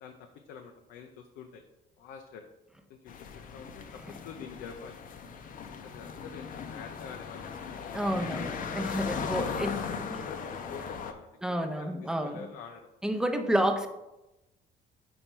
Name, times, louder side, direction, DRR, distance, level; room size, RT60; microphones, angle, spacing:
voice 1, 0.0-1.6 2.0-2.4 2.9-5.0 5.8-8.1 9.0-12.8 13.7-13.8, left 7 dB, 90° left, 4 dB, 0.5 m, -46 dB
sound 1, 3.1-11.1, left 6 dB, 55° left, 0.6 m, -38 dB
voice 2, 7.9-9.7 10.1-10.3 11.4-12.4 13.0-13.9, equal, 5° right, 6 dB, 0.6 m, -30 dB
5.4 x 4.4 x 4.4 m, 0.99 s
cardioid pair, 110°, 17 cm